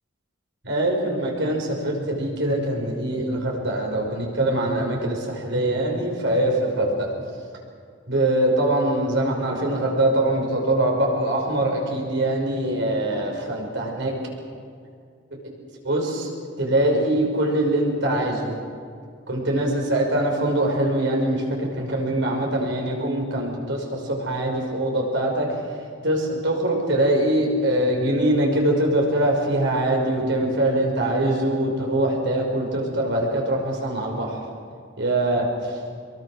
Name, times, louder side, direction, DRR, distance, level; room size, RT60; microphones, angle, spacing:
voice 1, 0.7-7.1 8.1-14.2 15.8-16.3 16.6-18.6 19.3-25.6 26.0-34.4 35.0-35.8, right 1 dB, 65° right, 0 dB, 5.8 m, -23 dB
25.5 x 22.5 x 6.4 m, 2.3 s
head